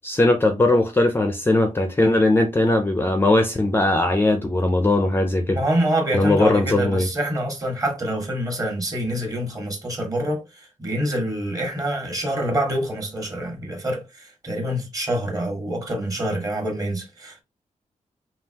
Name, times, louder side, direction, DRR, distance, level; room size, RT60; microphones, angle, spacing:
voice 1, 0.0-5.6 6.1-7.1, left 2 dB, 15° left, 0.5 m, -19 dB
voice 2, 5.5-17.4, right 1 dB, 25° right, 1.5 m, -26 dB
5.3 x 2.7 x 2.8 m
wide cardioid pair, 155°, 13 cm